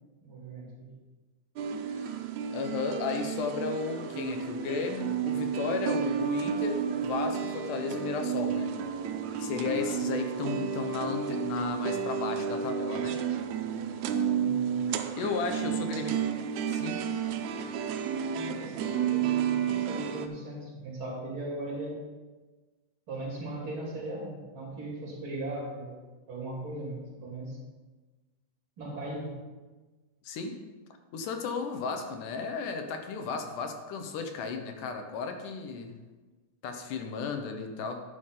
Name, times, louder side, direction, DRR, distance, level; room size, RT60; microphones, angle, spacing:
voice 1, 0.2-0.9 14.4-14.8 15.6-16.2 18.3-22.0 23.1-26.0 26.3-27.6 28.8-29.4, right 1 dB, 40° right, -4 dB, 3.4 m, -38 dB
sound 1, 1.6-20.3, right 7 dB, 80° right, 1.8 m, -31 dB
voice 2, 2.5-8.7 9.4-13.2 15.2-16.2 16.7-17.0 30.2-30.6 31.1-35.9 36.6-38.0, left 5 dB, 85° left, 5 dB, 2.5 m, -34 dB
11.5 x 8.4 x 3.8 m, 1.3 s
omnidirectional pair, 3.6 m